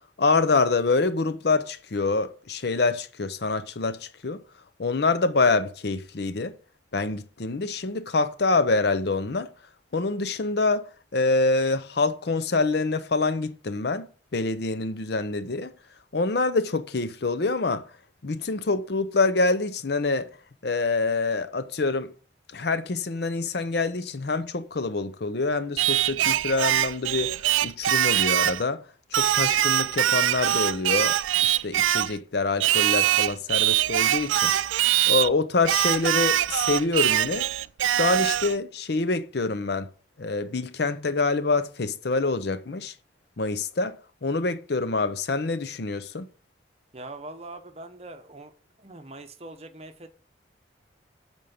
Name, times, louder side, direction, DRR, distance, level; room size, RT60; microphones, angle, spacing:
voice 1, 0.2-4.4 4.8-6.5 6.9-9.5 9.9-10.8 11.1-14.1 14.3-15.7 16.1-17.8 18.2-20.3 20.6-22.1 22.5-27.4 27.6-28.8 29.1-31.2 31.4-34.5 35.1-37.4 37.9-39.9 40.2-42.9 43.4-44.0 44.2-46.3, left 3 dB, 55° left, 0.6 m, -26 dB
Singing, 25.8-28.6 29.1-32.2 32.6-35.3 35.6-38.5, right 12 dB, 85° right, 0.3 m, -23 dB
voice 2, 46.9-48.5 48.8-50.1, right 2 dB, 30° right, 1.0 m, -42 dB
8.5 x 4.5 x 7.1 m
head